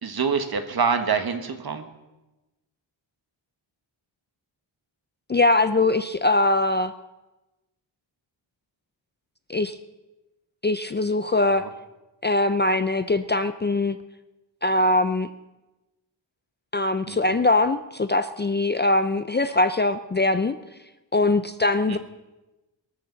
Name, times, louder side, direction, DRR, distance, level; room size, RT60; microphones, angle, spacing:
voice 1, 0.0-1.9 17.1-17.2 21.9-22.0, right 5 dB, 50° right, 7 dB, 1.5 m, -25 dB
voice 2, 5.3-6.9 9.5-9.8 10.6-11.7 12.2-14.0 14.6-15.3 16.7-20.5 21.1-22.0, left 2 dB, 25° left, 10 dB, 0.5 m, -22 dB
23.0 x 13.0 x 4.0 m, 1.0 s
wide cardioid pair, 125°, 47 cm